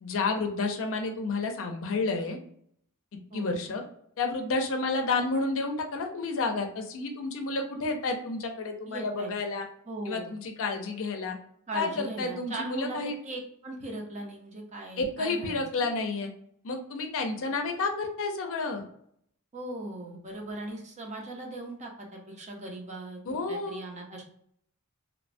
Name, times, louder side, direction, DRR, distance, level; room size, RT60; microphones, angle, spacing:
voice 1, 0.0-2.4 3.3-3.8 4.2-9.7 10.1-11.4 11.7-13.2 15.0-16.3 16.6-18.8 23.3-23.8, left 3 dB, 65° left, 4 dB, 0.5 m, -30 dB
voice 2, 8.8-9.3 9.9-10.3 11.7-15.9 19.5-23.2 23.5-24.2, right 2 dB, 30° right, 0 dB, 0.6 m, -39 dB
3.0 x 2.1 x 2.5 m, 0.67 s
head